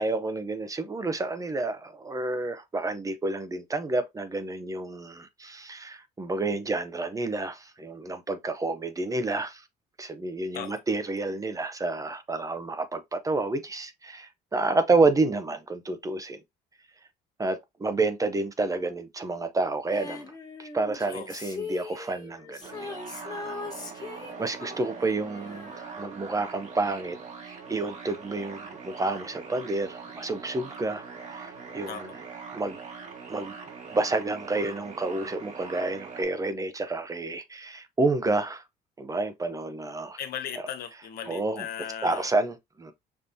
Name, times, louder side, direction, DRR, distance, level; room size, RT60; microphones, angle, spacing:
voice 1, 0.0-9.6 10.0-16.4 17.4-20.3 20.6-23.6 24.0-24.1 24.4-25.7 26.0-27.2 27.4-32.1 32.5-32.8 33.3-33.5 33.9-38.6 39.0-40.2 41.3-41.7 42.0-42.9, right 3 dB, 20° right, 0.6 m, -29 dB
Female singing, 19.9-26.5 26.8-26.9, left 3 dB, 25° left, 1.2 m, -40 dB
sound 1, 22.6-36.2, right 5 dB, 45° right, 1.4 m, -42 dB
voice 2, 40.2-42.3, left 9 dB, 65° left, 0.9 m, -37 dB
5.3 x 2.9 x 2.6 m
cardioid pair, 110°, 17 cm